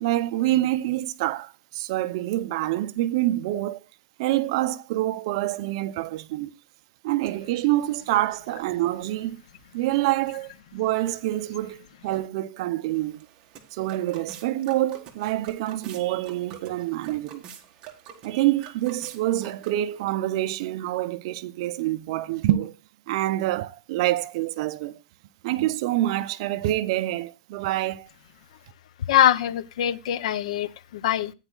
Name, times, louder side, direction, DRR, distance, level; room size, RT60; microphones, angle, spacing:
voice 1, 0.0-3.8 4.2-6.5 7.0-9.4 9.7-13.2 13.7-17.4 18.2-22.7 23.1-25.0 25.4-28.1, right 15 dB, 50° right, 0.6 m, -26 dB
sound 1, 12.9-20.0, right 8 dB, 30° right, 1.4 m, -47 dB
voice 2, 29.1-31.3, left 11 dB, 70° left, 0.7 m, -23 dB
14.5 x 9.1 x 2.3 m
supercardioid pair, 165°, 4 cm